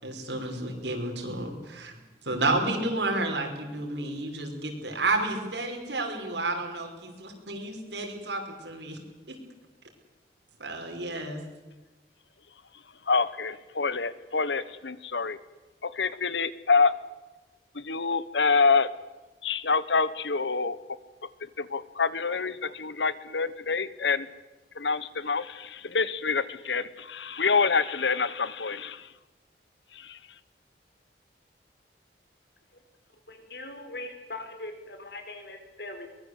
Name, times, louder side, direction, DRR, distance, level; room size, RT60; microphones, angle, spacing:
voice 1, 0.0-2.0 2.2-9.0 9.3-9.4 10.6-11.4, right 2 dB, 80° right, 3 dB, 5.5 m, -31 dB
voice 2, 13.1-15.4 15.8-16.9 17.7-18.9 19.4-20.8 21.4-24.3 24.7-29.1 29.9-30.2, left 4 dB, 85° left, 17 dB, 1.1 m, -26 dB
voice 3, 33.3-36.1, left 2 dB, 65° left, 7 dB, 4.2 m, -41 dB
23.0 x 21.0 x 8.1 m, 1.1 s
head